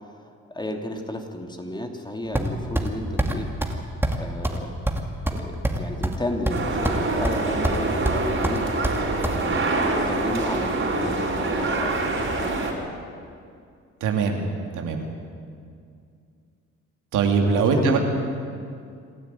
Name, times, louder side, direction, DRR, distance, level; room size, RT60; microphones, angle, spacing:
voice 1, 0.5-3.5 4.2-4.7 5.3-8.7 9.2-12.9 17.4-18.0, left 1 dB, 15° left, 3 dB, 2.8 m, -33 dB
sound 1, 2.4-2.9 3.2-3.3 3.6-3.8 4.0-4.2 4.4-4.6 4.9-6.2 6.5-7.0 7.2-7.8 8.1-9.4, right 1 dB, 5° right, 2.4 m, -24 dB
sound 2, 6.5-12.7, right 2 dB, 45° right, 4.8 m, -25 dB
voice 2, 14.0-14.5 14.8-15.0 17.1-18.0, right 5 dB, 85° right, 2 dB, 2.9 m, -21 dB
27.0 x 12.5 x 9.2 m, 2.3 s
cardioid pair, 90°, 30 cm